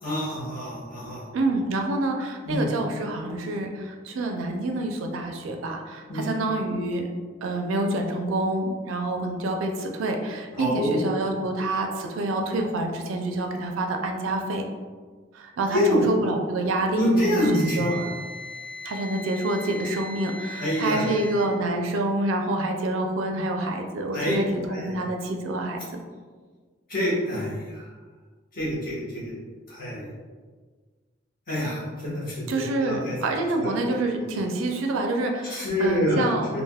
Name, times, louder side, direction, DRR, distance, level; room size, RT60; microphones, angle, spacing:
voice 1, 0.0-1.2 2.4-2.7 6.1-6.3 10.6-11.1 15.7-16.0 16.9-18.0 20.6-21.2 24.1-24.3 24.7-24.9 26.9-27.8 28.5-29.3 29.7-30.1 31.5-33.2 33.6-34.0 35.5-36.3 36.5-36.6, equal, 45° left, -8 dB, 1.2 m, -26 dB
voice 2, 1.3-7.1 7.4-14.6 15.3-18.0 18.8-26.0 32.5-36.6, right 2 dB, 90° right, 3 dB, 0.4 m, -27 dB
Wind instrument woodwind instrument, 17.3-21.5, right 1 dB, 5° left, 0.3 m, -38 dB
3.3 x 2.5 x 2.2 m, 1.5 s
head